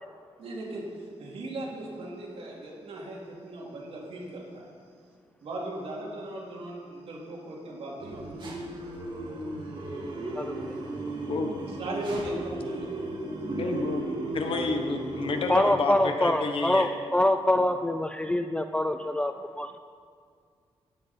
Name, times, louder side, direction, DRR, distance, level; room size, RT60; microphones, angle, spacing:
voice 1, 0.4-0.8 1.2-4.7 5.4-8.2 11.8-13.0, right 1 dB, 65° right, -4 dB, 2.9 m, -37 dB
sound 1, 8.0-15.7, right 2 dB, 45° right, 2.6 m, -36 dB
voice 2, 10.4-10.8 15.5-19.8, left 1 dB, 10° left, 8 dB, 0.3 m, -25 dB
voice 3, 11.3-11.8 13.5-14.1 14.3-16.9, left 3 dB, 60° left, 5 dB, 1.1 m, -30 dB
17.0 x 7.6 x 4.4 m, 2.1 s
wide cardioid pair, 135°, 11 cm